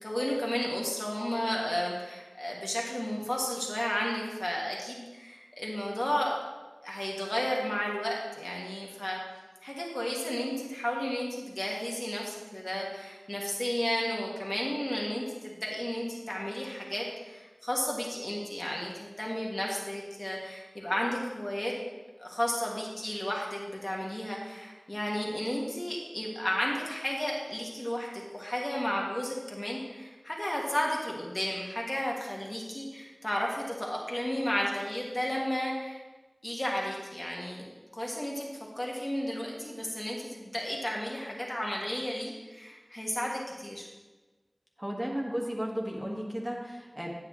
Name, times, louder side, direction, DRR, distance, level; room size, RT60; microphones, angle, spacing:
voice 1, 0.0-6.4 6.8-9.2 9.6-21.7 22.2-28.1 28.3-36.0 36.4-37.7 37.9-38.5 38.7-43.9, left 1 dB, 40° left, -2 dB, 1.6 m, -33 dB
voice 2, 44.8-47.1, equal, 25° right, -2 dB, 1.6 m, -34 dB
9.4 x 8.4 x 3.1 m, 1.2 s
wide cardioid pair, 40°, 0 cm